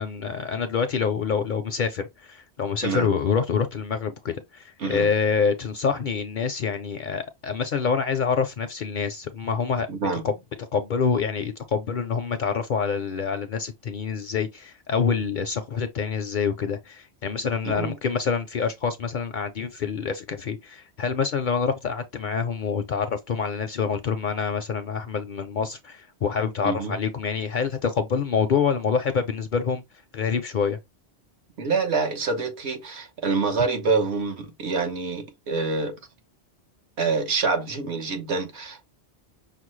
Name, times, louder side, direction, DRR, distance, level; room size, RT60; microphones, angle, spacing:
voice 1, 0.0-9.9 10.2-10.3 10.7-29.8 30.1-30.8, left 6 dB, 60° left, 0.5 m, -26 dB
voice 2, 9.9-10.3 17.6-17.9 26.6-27.0 31.6-35.9 37.0-38.9, right 4 dB, 70° right, 1.3 m, -26 dB
5.8 x 2.1 x 3.1 m
omnidirectional pair, 1.1 m